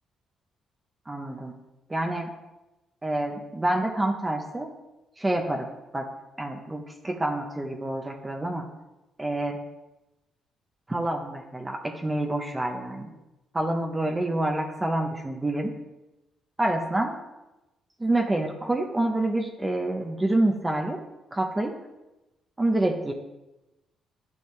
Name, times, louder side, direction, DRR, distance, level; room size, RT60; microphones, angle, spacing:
voice 1, 1.1-1.5 1.9-2.3 3.0-4.7 5.2-5.7 5.9-6.1 6.4-8.7 9.2-9.6 10.9-13.1 13.5-15.7 16.6-17.2 18.0-21.0 21.3-21.8 22.6-23.1, right 1 dB, 15° right, 2 dB, 1.1 m, -27 dB
11.0 x 9.7 x 3.5 m, 1.0 s
cardioid pair, 90°, 0 cm